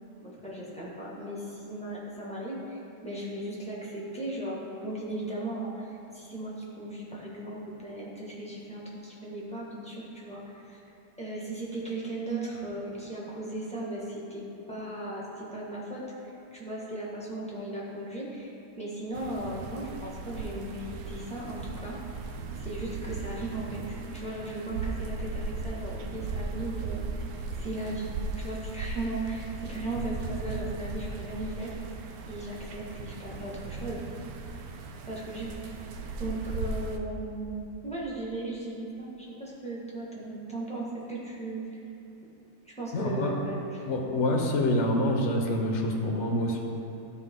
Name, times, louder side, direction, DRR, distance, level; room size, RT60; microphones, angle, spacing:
voice 1, 0.2-10.8 11.2-22.0 22.6-27.3 27.6-31.7 32.3-34.0 35.1-35.5 36.2-41.6 42.7-44.3, right 2 dB, 5° left, -6 dB, 1.4 m, -37 dB
sound 1, 19.1-37.0, right 3 dB, 70° right, 1.0 m, -37 dB
voice 2, 42.9-43.3 43.9-46.6, left 1 dB, 50° left, 0 dB, 1.2 m, -26 dB
13.0 x 4.6 x 3.7 m, 3.0 s
omnidirectional pair, 1.7 m